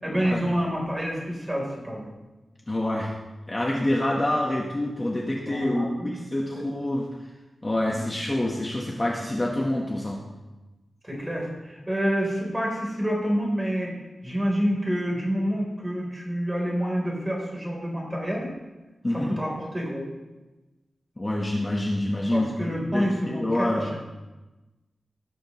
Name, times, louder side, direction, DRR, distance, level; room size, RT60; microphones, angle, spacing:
voice 1, 0.0-2.1 5.4-6.2 6.5-6.6 7.9-8.0 11.0-14.0 14.2-18.5 19.1-20.1 22.3-24.0, equal, 10° right, -2 dB, 3.9 m, -28 dB
voice 2, 2.7-3.2 3.5-7.2 7.6-10.2 19.0-19.4 21.2-23.9, left 1 dB, 20° left, -2 dB, 1.3 m, -27 dB
17.0 x 13.0 x 3.2 m, 1.1 s
wide cardioid pair, 175°, 0 cm